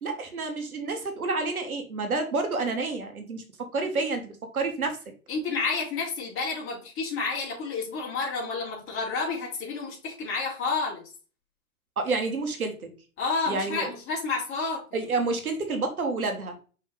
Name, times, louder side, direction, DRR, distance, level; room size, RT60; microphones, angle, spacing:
voice 1, 0.0-5.0 12.0-12.9 13.5-13.9 14.9-16.6, right 3 dB, 90° right, 6 dB, 1.8 m, -29 dB
voice 2, 5.3-11.1 13.2-14.8, left 4 dB, 30° left, -3 dB, 3.4 m, -30 dB
5.4 x 5.4 x 3.5 m, 0.36 s
hypercardioid pair, 115°, 42 cm